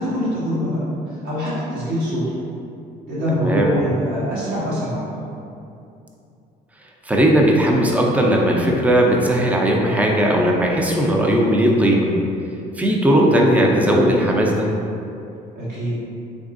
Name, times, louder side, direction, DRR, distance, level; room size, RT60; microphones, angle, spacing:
voice 1, 0.0-2.4 3.1-5.1 15.5-16.0, equal, 65° right, -9 dB, 1.5 m, -24 dB
voice 2, 3.3-3.7 7.0-12.1 12.8-14.7, equal, 10° right, -1 dB, 0.4 m, -17 dB
3.6 x 3.1 x 2.5 m, 2.6 s
cardioid pair, 110°, 17 cm